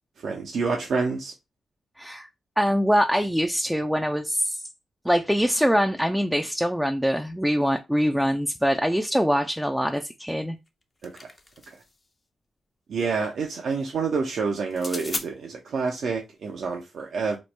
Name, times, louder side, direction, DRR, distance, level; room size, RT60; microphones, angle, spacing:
voice 1, 0.2-1.3 11.0-11.3 11.7-11.8 12.9-17.4, right 4 dB, 70° right, 0.5 m, -28 dB
voice 2, 2.0-2.3 2.6-4.6 5.0-10.6, equal, ahead, 0.4 m, -23 dB
sound 1, 10.7-12.0 14.7-15.3, left 2 dB, 35° left, 0.6 m, -36 dB
3.0 x 2.0 x 3.2 m
supercardioid pair, 45°, 0 cm